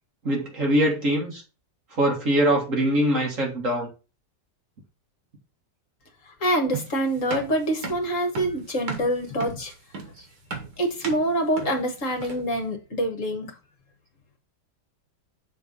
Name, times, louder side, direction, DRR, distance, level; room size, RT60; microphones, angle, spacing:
voice 1, 0.2-1.4 2.0-3.9, right 1 dB, 50° right, 2.0 m, -22 dB
voice 2, 6.2-9.7 10.8-13.5, right 1 dB, 50° left, 1.5 m, -26 dB
sound 1, 6.7-12.6, right 4 dB, 80° right, 2.0 m, -36 dB
6.9 x 3.4 x 5.3 m
omnidirectional pair, 1.8 m